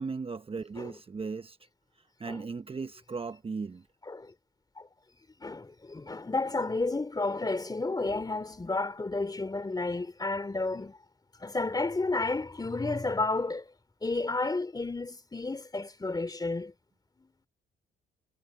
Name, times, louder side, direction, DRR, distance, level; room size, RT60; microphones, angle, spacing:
voice 1, 0.0-1.6 2.2-3.8, right 4 dB, 30° right, 1.0 m, -37 dB
voice 2, 4.0-4.3 4.8-4.9 5.4-11.0 11.4-13.7 14.0-16.7 17.2-17.3, left 3 dB, 20° left, 3.5 m, -31 dB
cardioid pair, 90°, 20 cm